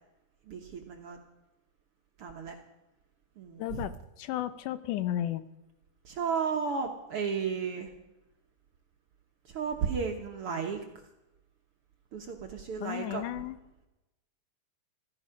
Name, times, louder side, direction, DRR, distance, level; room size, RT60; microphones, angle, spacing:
voice 1, 0.5-1.2 2.2-2.5 3.4-3.8 6.0-7.9 9.5-10.8 12.1-13.3, right 6 dB, 60° right, 3 dB, 1.7 m, -33 dB
voice 2, 3.6-5.4 12.8-13.6, left 12 dB, 80° left, 13 dB, 2.2 m, -33 dB
15.5 x 14.0 x 5.1 m, 0.97 s
omnidirectional pair, 3.8 m